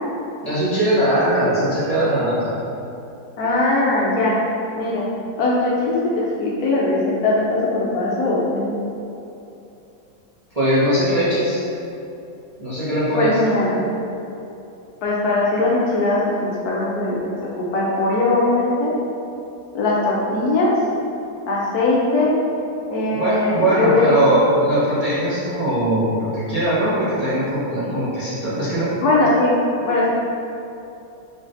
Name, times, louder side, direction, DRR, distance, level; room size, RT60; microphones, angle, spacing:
voice 1, 0.4-2.4 10.5-11.7 12.6-13.3 23.1-29.0, right 1 dB, 35° right, -13 dB, 0.6 m, -20 dB
voice 2, 3.4-4.3 4.8-5.0 5.4-8.7 13.1-13.8 15.0-18.9 19.7-20.7 21.5-22.3 22.9-24.0 29.0-30.1, left 2 dB, 70° left, -5 dB, 1.0 m, -20 dB
4.0 x 3.5 x 2.5 m, 2.8 s
omnidirectional pair, 1.9 m